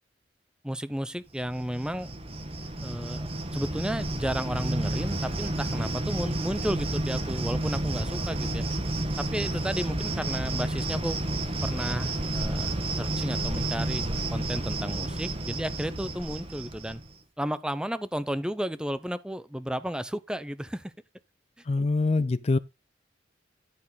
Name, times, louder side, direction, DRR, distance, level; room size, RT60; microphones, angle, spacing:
voice 1, 0.6-2.1 2.8-3.3 3.5-8.6 9.2-11.2 11.6-17.0 17.4-20.9, equal, 5° right, 0.6 m, -33 dB
Cricket, 1.4-17.1, right 1 dB, 30° right, 1.5 m, -31 dB
voice 2, 21.7-22.6, left 3 dB, 35° left, 0.4 m, -24 dB
11.0 x 6.3 x 4.0 m
head